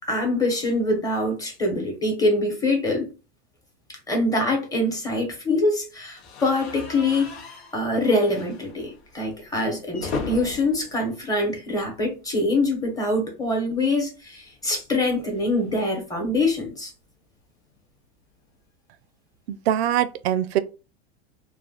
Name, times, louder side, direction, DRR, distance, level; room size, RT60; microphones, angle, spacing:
voice 1, 0.1-3.1 4.1-7.3 7.7-16.9, left 2 dB, 10° left, 1.0 m, -24 dB
sound 1, 6.2-12.2 12.5-12.7 13.0-13.1 14.3-16.7, left 4 dB, 75° left, 0.9 m, -38 dB
voice 2, 19.5-20.6, right 11 dB, 80° right, 0.5 m, -23 dB
2.4 x 2.3 x 3.6 m
supercardioid pair, 125°, 32 cm